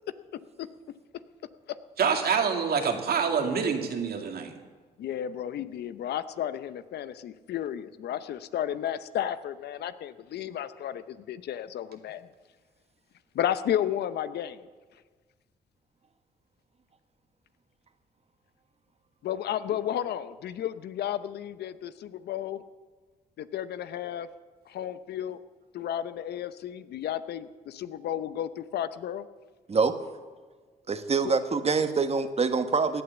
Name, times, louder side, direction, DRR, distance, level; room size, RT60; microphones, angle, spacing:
voice 1, 2.0-4.5, right 6 dB, 65° right, 4 dB, 2.3 m, -26 dB
voice 2, 5.0-12.3 13.3-14.7 19.2-22.6 23.4-24.3 24.7-25.4 25.7-29.3, left 10 dB, 75° left, 13 dB, 0.8 m, -33 dB
voice 3, 30.9-33.0, right 4 dB, 40° right, 9 dB, 1.4 m, -25 dB
17.0 x 9.6 x 7.1 m, 1.4 s
supercardioid pair, 60°, 17 cm